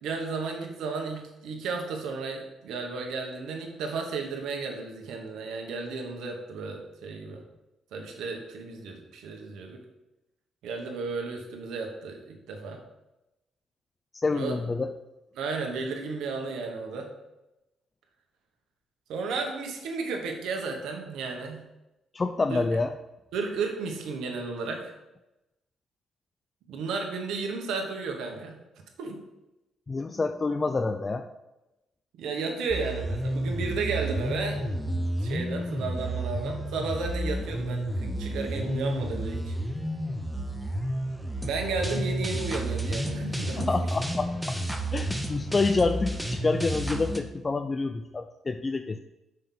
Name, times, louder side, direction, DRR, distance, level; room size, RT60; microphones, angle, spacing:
voice 1, 0.0-7.4 7.9-9.8 10.6-12.8 14.3-14.6 15.3-17.1 19.1-21.6 22.5-22.6 23.3-24.9 26.7-28.6 29.0-29.2 32.1-34.6 35.2-39.6 41.4-43.7, right 4 dB, 85° right, 2 dB, 1.1 m, -33 dB
voice 2, 14.1-14.9 22.1-22.9 29.9-31.3 43.6-44.6 44.9-49.0, left 3 dB, 30° left, 8 dB, 0.3 m, -28 dB
sound 1, 32.7-47.2, right 1 dB, ahead, 0.7 m, -31 dB
5.4 x 3.7 x 5.8 m, 0.97 s
cardioid pair, 90°, 0 cm